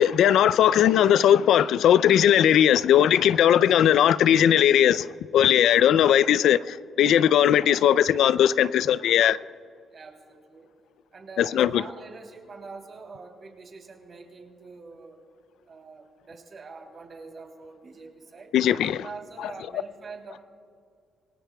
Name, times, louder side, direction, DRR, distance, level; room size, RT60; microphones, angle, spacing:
voice 1, 0.0-5.1 5.3-9.4 11.4-11.8 18.5-19.0, left 10 dB, 75° left, 0.4 m, -19 dB
voice 2, 9.9-10.7 11.1-15.2 15.7-18.5 19.0-20.4, right 4 dB, 45° right, 3.1 m, -44 dB
27.0 x 18.5 x 2.3 m
cardioid pair, 90°, 0 cm